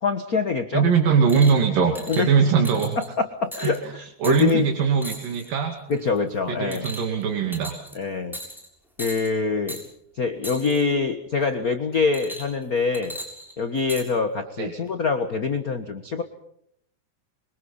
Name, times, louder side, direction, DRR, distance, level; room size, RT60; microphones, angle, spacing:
voice 1, 0.0-0.8 2.1-2.3 3.0-4.7 5.9-6.9 7.9-8.4 9.0-9.8 10.2-13.2 13.6-16.2, left 5 dB, 50° left, 8 dB, 1.0 m, -25 dB
voice 2, 0.7-3.0 3.6-3.9 4.2-5.7 6.5-7.7 14.6-14.7, right 6 dB, 80° right, 3 dB, 4.0 m, -21 dB
sound 1, 1.3-1.6 2.0-2.3 2.6-3.1 3.5-3.8 4.2-4.5 5.0-5.5 5.9-6.2 6.7-7.2 7.5-7.9 8.3-8.7 9.0-9.3 9.7-9.8 10.4-10.8 12.1-12.6 12.9-14.1 14.9-15.0, equal, ahead, 7.1 m, -37 dB
27.0 x 24.5 x 5.6 m, 0.72 s
omnidirectional pair, 3.9 m